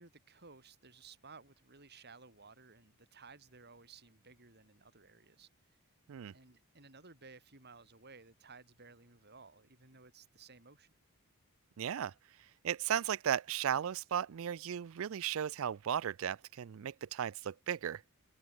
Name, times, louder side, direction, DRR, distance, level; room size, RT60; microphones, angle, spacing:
voice 1, 0.0-5.8 6.3-10.9, right 4 dB, 50° right, 4.8 m, -57 dB
voice 2, 11.8-12.1 12.6-18.0, right 9 dB, 65° right, 0.4 m, -35 dB
head